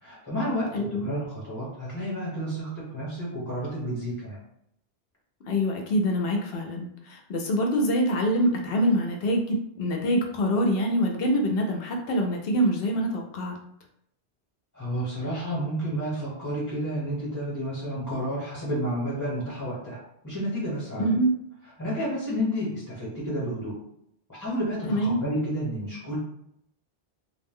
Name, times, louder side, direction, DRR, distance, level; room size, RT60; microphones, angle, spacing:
voice 1, 0.0-4.4 14.7-21.0 21.8-23.7 24.3-26.2, equal, 15° left, -7 dB, 1.0 m, -31 dB
voice 2, 0.7-1.1 5.5-13.6 21.0-21.3 24.9-25.2, equal, 65° left, 1 dB, 0.7 m, -25 dB
2.5 x 2.0 x 3.5 m, 0.73 s
omnidirectional pair, 1.2 m